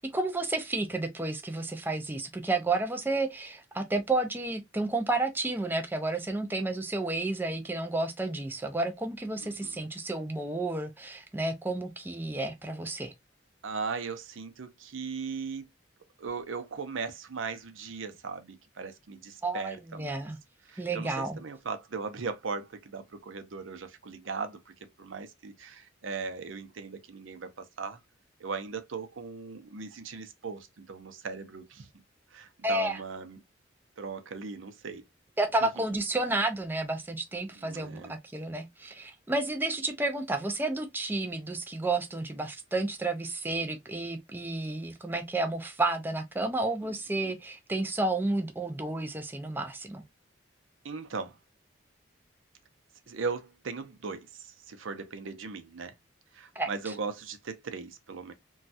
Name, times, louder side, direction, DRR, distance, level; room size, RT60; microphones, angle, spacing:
voice 1, 0.0-13.1 19.4-19.7 20.0-20.4 20.8-21.4 32.6-33.0 35.4-50.0 56.6-56.9, right 2 dB, 10° right, 0.4 m, -31 dB
voice 2, 9.4-9.8 13.6-15.7 16.2-20.2 20.6-24.7 25.0-28.0 28.4-31.9 32.3-33.4 34.0-35.0 35.6-35.7 37.6-38.1 46.8-47.3 50.8-51.4 53.1-55.9 56.3-58.3, right 4 dB, 80° right, 0.6 m, -38 dB
3.1 x 2.3 x 2.6 m
head